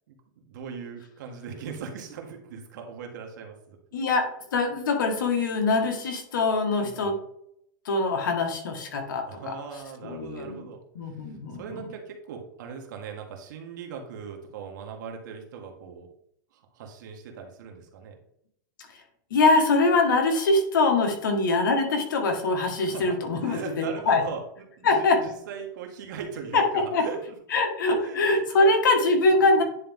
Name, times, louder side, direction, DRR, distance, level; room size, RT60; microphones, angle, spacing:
voice 1, 0.1-3.8 6.8-7.1 9.3-10.8 11.6-16.1 16.7-18.2 22.8-24.4 24.8-27.4 28.0-28.2 28.5-28.8, right 6 dB, 70° right, 2 dB, 1.9 m, -39 dB
voice 2, 3.9-7.2 7.9-9.5 10.0-10.7 11.0-11.8 19.3-24.2 24.8-25.2 26.5-27.0 27.5-29.6, left 3 dB, 85° left, 3 dB, 1.9 m, -23 dB
10.0 x 3.4 x 3.7 m, 0.71 s
supercardioid pair, 145°, 10 cm